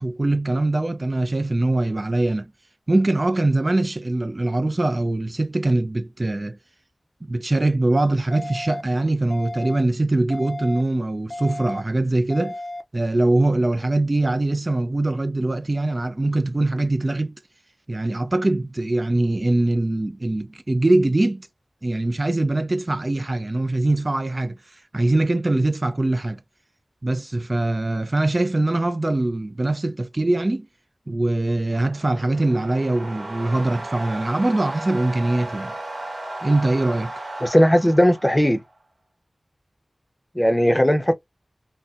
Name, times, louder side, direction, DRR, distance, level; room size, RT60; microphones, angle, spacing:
voice 1, 0.0-2.5 2.9-6.6 7.3-12.5 12.9-17.3 17.9-21.5 21.8-26.4 27.0-30.7 31.1-35.7 36.4-37.1, right 2 dB, 35° right, 0.3 m, -22 dB
sound 1, 8.3-8.8 9.3-9.8 10.3-10.8 11.3-11.8 12.3-12.8, left 1 dB, 75° left, 0.5 m, -33 dB
sound 2, 31.6-38.7, right 2 dB, 70° right, 1.2 m, -35 dB
voice 2, 37.4-38.6 40.3-41.1, equal, 10° left, 0.6 m, -17 dB
4.0 x 2.0 x 2.4 m
wide cardioid pair, 85°, 0 cm